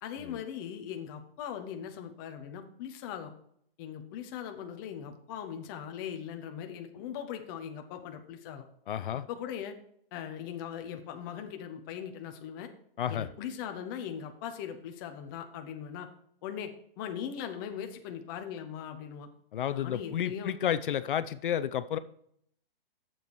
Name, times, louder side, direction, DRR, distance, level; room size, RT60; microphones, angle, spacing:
voice 1, 0.0-3.3 3.8-8.7 9.3-9.8 10.1-12.7 13.1-16.1 16.4-16.7 17.0-19.3 19.7-20.5, left 9 dB, 20° left, 6 dB, 0.7 m, -40 dB
voice 2, 8.9-9.3 13.0-13.3 19.5-22.0, left 10 dB, 60° left, 13 dB, 0.6 m, -31 dB
7.8 x 7.1 x 4.7 m, 0.69 s
hypercardioid pair, 160°, 29 cm